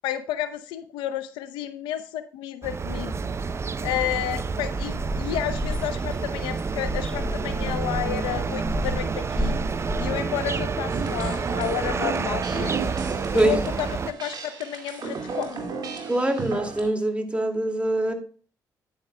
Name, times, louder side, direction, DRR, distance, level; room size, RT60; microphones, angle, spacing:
voice 1, 0.0-3.3 3.8-9.6 10.0-12.8 13.3-15.6, left 11 dB, 90° left, 11 dB, 0.7 m, -31 dB
sound 1, 2.6-14.1, right 5 dB, 35° right, 0.5 m, -29 dB
sound 2, 4.8-10.1, equal, 15° left, 1.3 m, -32 dB
sound 3, 10.9-16.9, right 5 dB, 60° right, 2.2 m, -34 dB
voice 2, 16.1-18.1, right 1 dB, 15° right, 4 dB, 2.3 m, -23 dB
9.6 x 9.0 x 2.2 m, 0.41 s
supercardioid pair, 65°, 8 cm